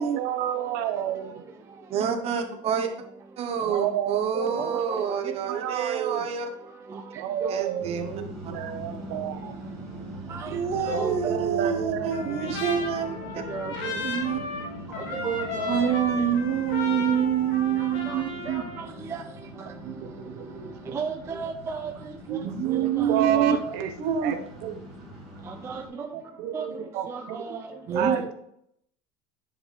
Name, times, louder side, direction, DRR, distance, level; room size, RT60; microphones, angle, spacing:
voice 1, 0.0-1.3 3.6-4.6 5.5-6.2 7.2-9.5 10.9-12.6 19.8-21.0 22.3-23.9 24.2-24.8 26.4-27.4 28.0-28.3, right 10 dB, 60° right, 8 dB, 0.9 m, -31 dB
voice 2, 1.9-2.9 3.4-6.5 7.5-8.1 8.4-8.5 10.4-13.4 14.0-14.4 15.7-18.6 22.4-23.6 24.0-24.3 27.9-28.2, right 8 dB, 35° right, 5 dB, 1.0 m, -27 dB
voice 3, 4.6-5.0 7.4-7.5 10.3-10.5 10.9-11.3 13.5-13.9 15.0-15.9 18.1-18.2 18.5-19.2 20.9-21.9 23.0-23.6 25.5-26.1 26.5-26.7 27.1-28.2, right 5 dB, 15° right, 3 dB, 0.4 m, -33 dB
sound 1, 7.8-25.9, equal, ahead, 2.3 m, -41 dB
Trumpet, 12.1-18.8, left 3 dB, 60° left, 1.8 m, -34 dB
9.8 x 4.5 x 3.5 m, 0.73 s
cardioid pair, 165°, 18 cm